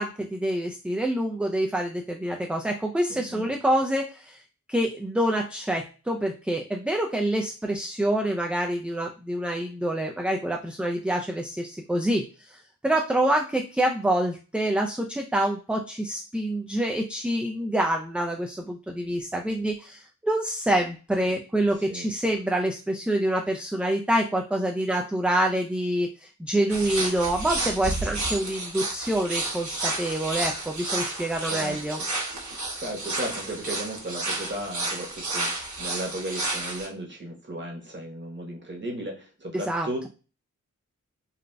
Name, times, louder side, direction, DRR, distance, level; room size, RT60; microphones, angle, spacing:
voice 1, 0.0-4.4 4.7-32.0 39.5-40.1, right 1 dB, 5° right, 2 dB, 0.3 m, -26 dB
voice 2, 3.1-3.5 21.9-22.1 31.4-31.8 32.8-40.1, right 1 dB, 35° right, 0 dB, 1.0 m, -35 dB
sound 1, 26.7-36.9, right 2 dB, 60° right, 1.0 m, -31 dB
3.9 x 2.4 x 2.2 m, 0.34 s
wide cardioid pair, 40°, 32 cm